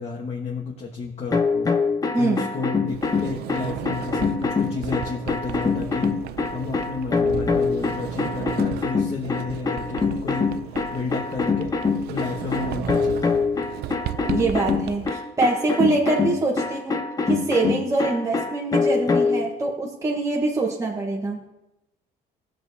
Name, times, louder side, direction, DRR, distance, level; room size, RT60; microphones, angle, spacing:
voice 1, 0.0-1.7 2.2-6.1 6.5-10.6 10.9-11.8 12.1-13.5, left 4 dB, 40° left, -1 dB, 1.3 m, -32 dB
sound 1, 1.3-19.5, left 4 dB, 20° left, 0.9 m, -24 dB
voice 2, 2.1-2.5 14.3-21.4, right 3 dB, 20° right, -1 dB, 1.2 m, -24 dB
Sliding door, 2.9-15.1, right 12 dB, 75° right, 0.4 m, -35 dB
16.5 x 6.6 x 2.7 m, 0.94 s
cardioid pair, 110°, 17 cm